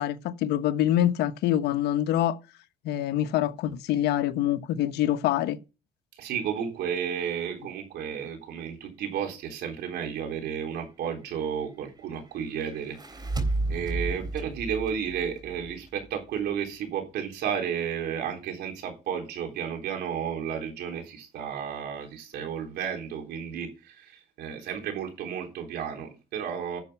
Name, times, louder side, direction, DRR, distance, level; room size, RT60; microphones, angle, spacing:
voice 1, 0.0-2.4 2.8-5.6, left 12 dB, 80° left, 1.0 m, -25 dB
voice 2, 6.2-13.3 13.7-26.8, right 8 dB, 75° right, 3.6 m, -32 dB
sound 1, 12.7-16.1, right 2 dB, 25° right, 3.5 m, -32 dB
10.5 x 7.0 x 5.6 m
cardioid pair, 110°, 17 cm